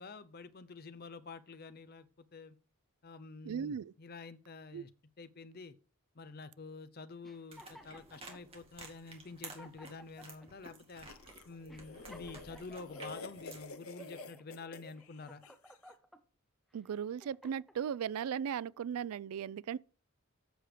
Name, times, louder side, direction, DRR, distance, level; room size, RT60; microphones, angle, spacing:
voice 1, 0.0-2.6 3.0-4.9 5.2-5.7 6.2-11.1 11.4-15.4, left 4 dB, 45° left, 0.6 m, -48 dB
voice 2, 3.5-3.9 4.7-4.8 16.7-19.8, right 8 dB, 85° right, 0.3 m, -37 dB
sound 1, 7.2-8.4 9.1-9.2 9.4-10.5 11.1-11.2 11.7-13.2 13.7-14.4 14.9-16.2 16.8-17.8, equal, ahead, 0.7 m, -56 dB
sound 2, 7.5-13.7, right 3 dB, 25° right, 2.0 m, -53 dB
sound 3, 11.1-15.8, left 3 dB, 75° left, 0.9 m, -49 dB
7.8 x 6.6 x 5.0 m
head